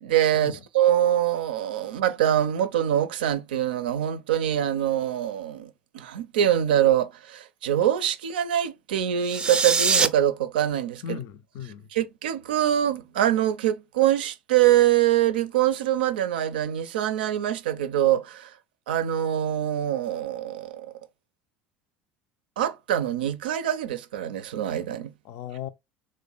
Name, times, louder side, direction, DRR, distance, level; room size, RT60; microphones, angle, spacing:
voice 1, 0.0-11.2 11.9-18.5 18.9-20.9 22.6-25.1, right 11 dB, 80° right, 0.4 m, -24 dB
sound 1, 9.2-10.1, right 4 dB, 20° right, 0.4 m, -22 dB
voice 2, 11.0-11.9 25.2-25.7, left 9 dB, 60° left, 0.4 m, -37 dB
3.0 x 2.1 x 3.9 m
hypercardioid pair, 70°, 5 cm